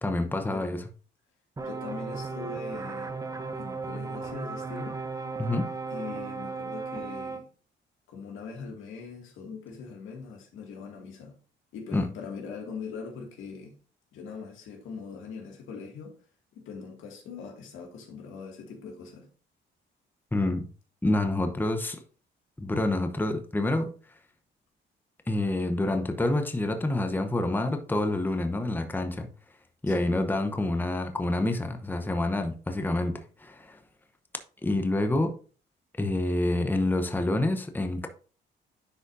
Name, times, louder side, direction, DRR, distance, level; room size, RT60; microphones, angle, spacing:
voice 1, 0.0-0.8 5.4-5.7 11.9-12.1 20.3-20.7 21.0-22.0 22.6-23.9 25.3-29.3 29.8-33.8 34.6-35.3 36.0-38.1, left 2 dB, 10° left, 0.8 m, -27 dB
voice 2, 1.6-3.1 3.5-5.0 5.9-7.5 8.1-11.4 11.7-13.7 14.1-16.1 16.5-19.3 29.9-30.1, left 5 dB, 85° left, 2.2 m, -41 dB
sound 1, 1.6-7.4, right 4 dB, 15° right, 0.8 m, -36 dB
10.0 x 4.9 x 2.6 m
cardioid pair, 90°, 20 cm